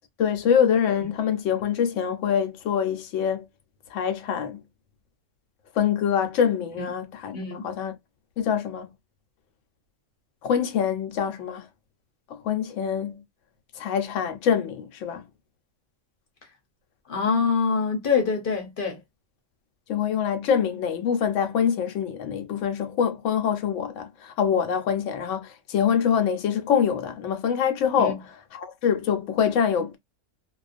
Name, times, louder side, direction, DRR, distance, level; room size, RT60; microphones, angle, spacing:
voice 1, 0.2-3.5 3.9-4.6 5.8-7.9 8.4-8.9 10.4-11.7 12.3-13.2 13.8-15.2 19.9-28.2 28.5-30.0, left 8 dB, 80° left, 1.0 m, -25 dB
voice 2, 7.3-7.6 17.1-19.0 28.0-28.1, left 5 dB, 50° left, 0.8 m, -24 dB
2.4 x 2.1 x 2.4 m
omnidirectional pair, 1.3 m